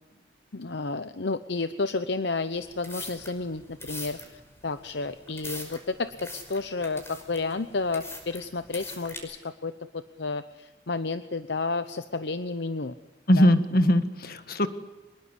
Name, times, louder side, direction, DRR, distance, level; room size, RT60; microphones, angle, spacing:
voice 1, 0.5-12.9 13.4-13.5, left 3 dB, 65° left, 11 dB, 0.9 m, -31 dB
sound 1, 2.5-9.2, left 2 dB, 15° left, 5.4 m, -42 dB
voice 2, 13.3-14.7, equal, 50° left, 10 dB, 1.7 m, -21 dB
25.5 x 21.5 x 8.3 m, 1.2 s
head